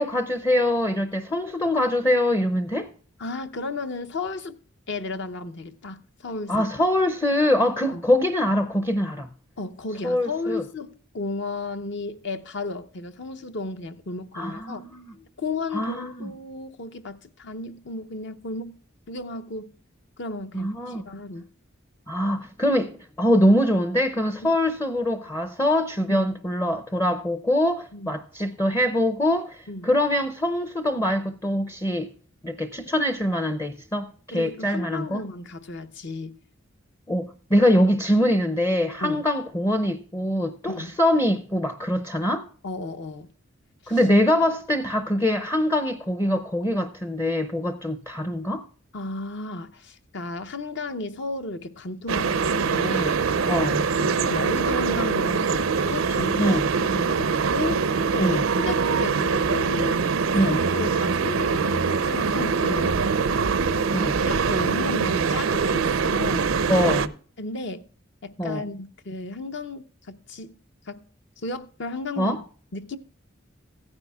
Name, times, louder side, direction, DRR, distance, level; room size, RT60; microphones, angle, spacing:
voice 1, 0.0-2.9 6.5-9.3 10.0-10.6 14.3-15.1 15.7-16.3 20.5-21.0 22.1-32.1 32.4-35.2 37.1-42.5 43.9-48.6 53.5-53.9 56.3-56.7 58.2-58.5 60.3-60.6 63.9-64.2 66.7-67.1 68.4-68.6 72.2-72.4, left 1 dB, 15° left, 0.5 m, -23 dB
voice 2, 3.2-4.6 4.9-6.6 7.9-8.0 9.6-14.8 15.4-18.8 19.1-19.7 20.2-21.5 26.1-26.2 27.9-28.1 29.7-29.9 34.3-36.4 39.0-39.2 40.7-41.0 42.6-43.3 43.8-44.0 48.9-53.2 53.9-56.6 56.9-58.4 58.6-62.9 63.7-63.8 64.2-66.5 67.4-67.8 68.2-70.6 70.9-71.0 71.4-72.4 72.7-73.0, left 2 dB, 60° left, 0.7 m, -33 dB
sound 1, 52.1-67.1, right 5 dB, 85° right, 0.6 m, -23 dB
16.0 x 9.8 x 2.3 m
head